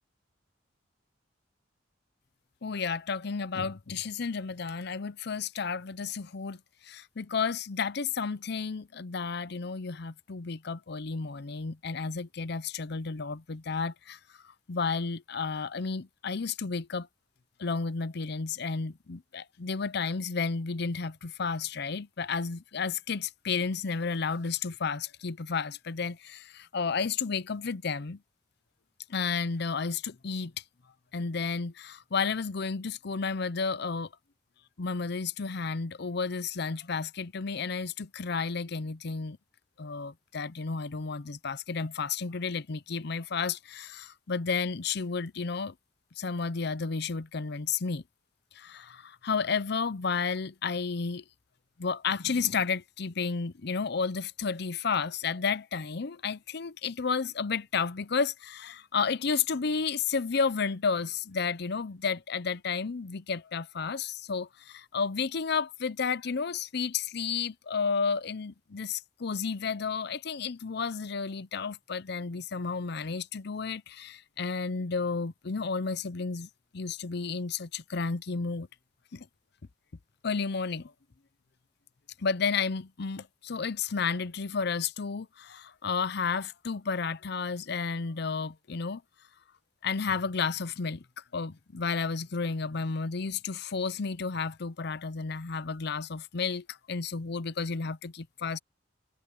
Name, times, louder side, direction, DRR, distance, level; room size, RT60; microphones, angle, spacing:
voice 1, 2.6-14.2 14.7-17.1 17.6-28.2 29.1-30.5 31.1-34.1 34.8-39.4 39.8-45.7 46.2-48.0 48.6-51.2 51.8-78.7 79.1-79.3 80.2-80.9 82.2-89.0 89.8-91.0 91.3-98.6, left 5 dB, 60° left, 0.7 m, -32 dB
head